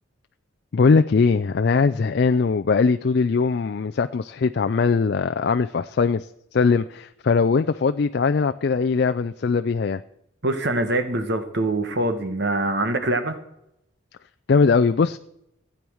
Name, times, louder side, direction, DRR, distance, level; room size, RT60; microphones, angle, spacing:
voice 1, 0.7-6.3 6.5-10.0 14.5-15.2, left 4 dB, 55° left, 9 dB, 0.4 m, -20 dB
voice 2, 10.4-13.4, right 1 dB, 55° right, 9 dB, 1.3 m, -24 dB
15.5 x 8.7 x 6.3 m, 0.81 s
head